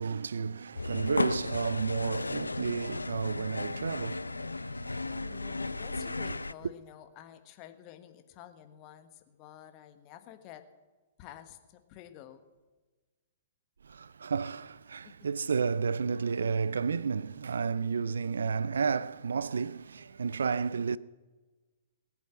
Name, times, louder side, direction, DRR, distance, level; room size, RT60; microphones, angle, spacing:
voice 1, 0.0-5.4 5.9-6.2 13.8-21.0, right 5 dB, 65° right, 0.4 m, -32 dB
sound 1, 0.8-6.5, left 3 dB, 80° left, 0.4 m, -35 dB
voice 2, 5.1-10.6 11.2-12.4 15.0-15.1, left 11 dB, 35° left, 1.3 m, -50 dB
19.5 x 8.4 x 7.4 m
figure-of-eight pair, 110°, 0 cm